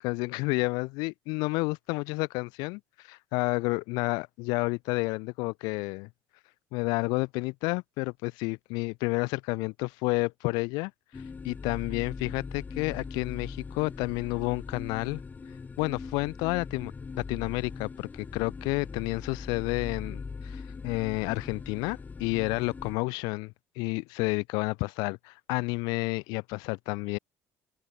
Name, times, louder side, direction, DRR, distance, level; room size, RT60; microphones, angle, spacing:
voice 1, 0.0-6.1 6.7-15.2 15.8-27.2, left 27 dB, 80° left, 0.4 m, -30 dB
sound 1, 11.1-23.0, left 4 dB, 25° left, 0.5 m, -41 dB
open air
supercardioid pair, 80°, 7 cm